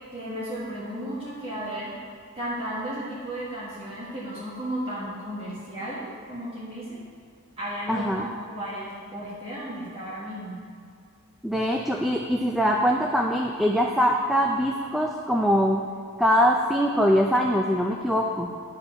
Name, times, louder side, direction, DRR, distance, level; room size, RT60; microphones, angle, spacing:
voice 1, 0.1-1.9 2.3-7.0 7.6-10.6, right 1 dB, 25° right, -8 dB, 1.6 m, -34 dB
voice 2, 7.9-8.3 11.4-15.8 16.2-18.5, equal, ahead, 1 dB, 0.4 m, -23 dB
11.0 x 5.2 x 5.8 m, 2.3 s
head